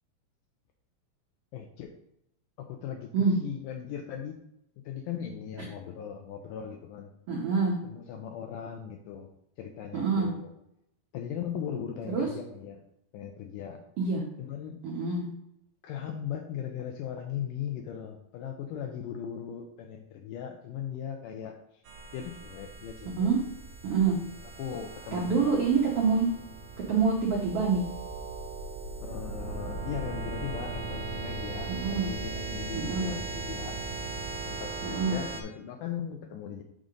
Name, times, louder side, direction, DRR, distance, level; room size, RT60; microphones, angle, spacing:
voice 1, 1.5-1.9 2.6-4.4 4.9-7.1 7.8-9.3 9.6-10.5 11.1-12.8 13.1-13.8 14.4-14.8 15.8-21.8 22.1-23.3 24.6-25.6 29.0-33.8 34.5-36.6, left 8 dB, 80° left, 3 dB, 1.9 m, -38 dB
voice 2, 7.3-7.7 9.9-10.3 12.1-12.3 14.0-14.2 14.8-15.2 23.2-23.4 23.8-24.2 25.1-26.3 26.9-27.8 31.7-32.1 32.7-33.2 34.8-35.2, right 5 dB, 90° right, -3 dB, 1.3 m, -26 dB
sound 1, 21.8-35.4, right 3 dB, 70° right, 1.4 m, -38 dB
6.2 x 3.8 x 5.2 m, 0.78 s
omnidirectional pair, 4.3 m